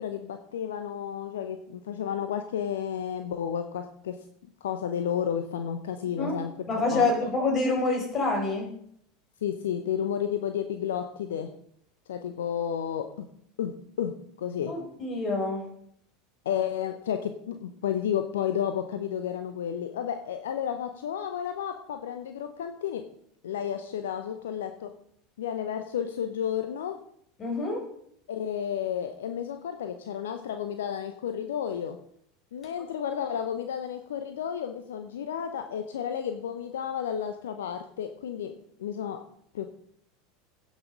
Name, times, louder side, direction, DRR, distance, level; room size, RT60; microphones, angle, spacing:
voice 1, 0.0-4.2 4.6-7.1 9.4-11.5 12.1-13.3 13.6-14.7 16.4-23.1 23.4-25.0 25.4-27.0 28.3-32.0 32.5-39.2 39.5-39.7, left 9 dB, 70° left, 8 dB, 0.8 m, -32 dB
voice 2, 6.7-8.7 14.7-15.6 27.4-27.8, left 3 dB, 30° left, 1 dB, 4.7 m, -27 dB
16.5 x 6.4 x 5.3 m, 0.69 s
figure-of-eight pair, 80°, 0 cm